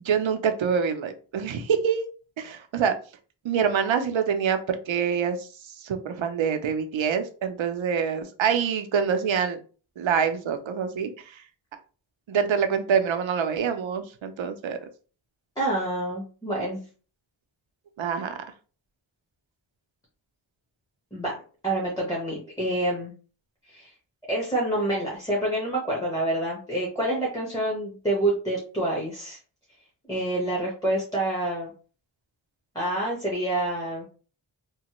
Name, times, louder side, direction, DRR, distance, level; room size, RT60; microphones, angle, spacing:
voice 1, 0.0-2.0 2.4-2.9 3.4-5.5 5.8-9.6 10.0-11.1 12.3-14.8 18.0-18.4, right 7 dB, 75° right, 8 dB, 0.6 m, -25 dB
voice 2, 15.6-16.8 21.1-21.3 21.6-23.1 23.7-23.9 24.3-29.4 30.1-31.7 32.7-34.0, right 1 dB, 10° left, -3 dB, 1.0 m, -27 dB
3.0 x 2.1 x 2.9 m, 0.38 s
wide cardioid pair, 75°, 47 cm